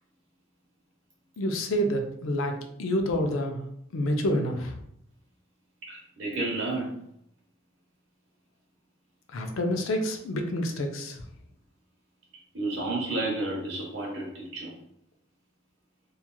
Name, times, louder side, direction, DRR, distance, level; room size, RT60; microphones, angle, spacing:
voice 1, 1.4-2.5 2.8-3.6 3.9-4.8 9.3-11.2, equal, 75° left, 3 dB, 0.4 m, -28 dB
voice 2, 5.8-7.0 12.5-14.7, right 2 dB, 65° right, -2 dB, 0.9 m, -31 dB
2.9 x 2.3 x 2.2 m, 0.71 s
head